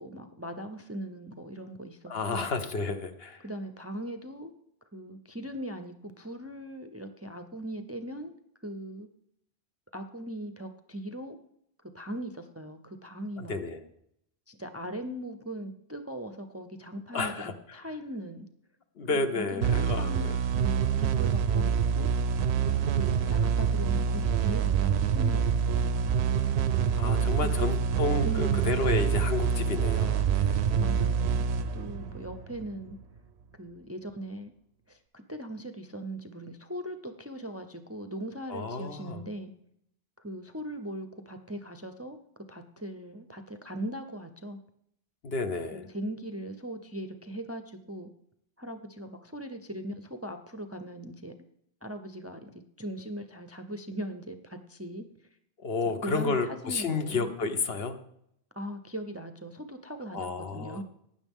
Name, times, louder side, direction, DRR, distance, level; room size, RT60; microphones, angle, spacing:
voice 1, 0.0-2.5 3.4-4.5 4.9-8.3 8.6-9.1 9.9-11.4 11.9-13.6 14.5-18.5 19.1-22.1 22.8-26.1 27.0-27.5 28.2-28.7 30.8-31.5 31.7-33.0 33.6-34.5 34.9-39.5 40.2-44.6 45.7-48.1 48.6-51.3 51.8-55.1 56.0-57.3 58.6-60.8, right 1 dB, 20° right, 7 dB, 0.5 m, -40 dB
voice 2, 2.1-3.4 13.4-13.8 17.1-17.5 19.0-20.3 26.9-30.6 38.5-39.2 45.2-45.8 55.6-58.0 60.1-60.8, left 4 dB, 70° left, 8 dB, 1.2 m, -31 dB
sound 1, 19.6-32.9, right 7 dB, 80° right, 0.9 m, -26 dB
16.0 x 10.0 x 3.6 m, 0.74 s
omnidirectional pair, 1.1 m